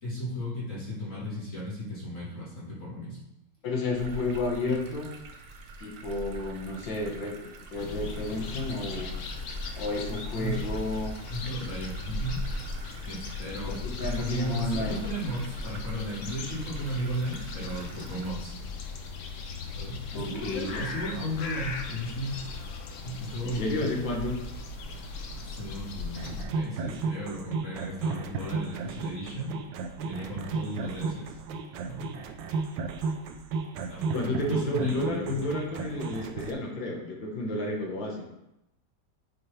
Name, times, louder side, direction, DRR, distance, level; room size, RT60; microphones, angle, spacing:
voice 1, 0.0-3.2 10.4-10.9 11.3-12.5 13.1-18.9 19.8-22.4 23.0-23.9 25.4-29.6 30.0-31.3 31.8-32.1 33.8-35.4, equal, 45° left, -8 dB, 2.1 m, -35 dB
voice 2, 3.6-5.1 5.8-7.4 7.7-9.1 9.7-11.1 13.6-15.0 20.1-20.7 23.4-24.4 34.1-38.2, left 2 dB, 85° left, -1 dB, 2.1 m, -31 dB
sound 1, 3.9-18.3, right 2 dB, 60° right, 1.2 m, -43 dB
sound 2, 7.8-26.4, left 4 dB, 60° left, 0.8 m, -38 dB
sound 3, 26.2-36.5, right 4 dB, 85° right, 1.4 m, -34 dB
9.8 x 4.3 x 3.3 m, 0.90 s
omnidirectional pair, 2.0 m